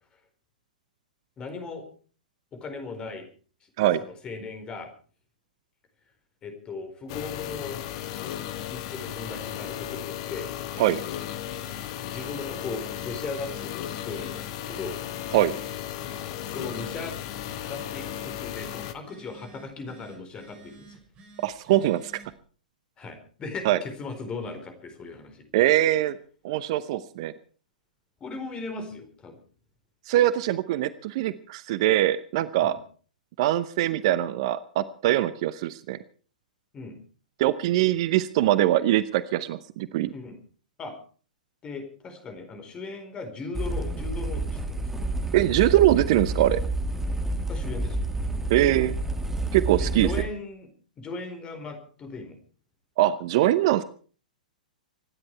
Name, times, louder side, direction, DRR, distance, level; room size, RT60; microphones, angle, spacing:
voice 1, 1.4-1.9 2.5-3.2 4.0-4.9 6.4-7.8 8.7-10.5 12.1-15.0 16.4-17.1 17.6-21.0 23.0-25.4 28.2-29.4 32.6-32.8 36.7-37.0 40.1-40.4 40.8-41.0 41.6-44.9 47.5-48.1 49.8-50.7 51.0-52.4, left 3 dB, 20° left, 7 dB, 4.3 m, -38 dB
sound 1, 7.1-18.9, left 11 dB, 40° left, 1.5 m, -35 dB
Telephone, 10.6-22.4, right 4 dB, 30° right, 6.1 m, -51 dB
voice 2, 21.4-22.1 23.6-23.8 25.5-26.2 26.4-27.3 30.1-32.8 33.4-36.0 37.4-40.1 45.3-46.6 48.5-48.9 49.5-50.1 53.0-53.8, right 14 dB, 45° right, 16 dB, 0.8 m, -22 dB
sound 2, 43.5-50.2, right 2 dB, 5° right, 2.5 m, -29 dB
25.5 x 10.5 x 4.6 m, 0.42 s
figure-of-eight pair, 105°, 4 cm